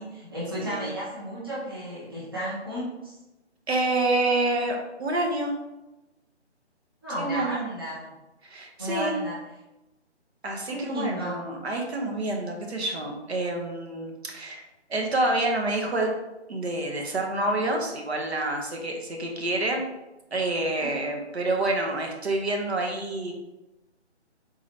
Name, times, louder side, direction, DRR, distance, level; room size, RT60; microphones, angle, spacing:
voice 1, 0.0-3.2 7.0-8.1 8.8-9.4 10.7-11.4 20.7-20.9, equal, 20° right, -10 dB, 0.7 m, -33 dB
voice 2, 3.7-5.6 7.2-7.7 8.4-9.2 10.4-14.6 14.9-16.1 16.5-19.8 20.3-23.3, right 2 dB, 65° right, 1 dB, 0.9 m, -28 dB
3.9 x 2.8 x 3.1 m, 1.0 s
hypercardioid pair, 175°, 35 cm